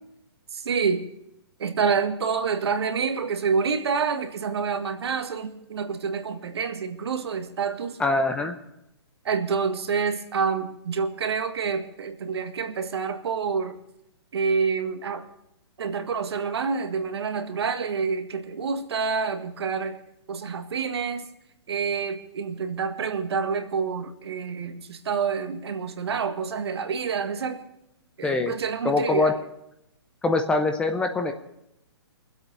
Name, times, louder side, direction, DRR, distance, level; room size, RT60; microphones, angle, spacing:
voice 1, 0.5-1.0 1.6-8.0 9.3-13.8 14.3-15.2 15.8-20.0 20.3-21.3 21.7-27.6 28.2-29.4, right 5 dB, 70° right, 8 dB, 1.8 m, -27 dB
voice 2, 8.0-8.6 28.2-28.5 28.8-29.3 30.2-31.3, left 3 dB, 5° left, 6 dB, 0.8 m, -23 dB
23.0 x 8.1 x 5.4 m, 0.80 s
hypercardioid pair, 155°, 14 cm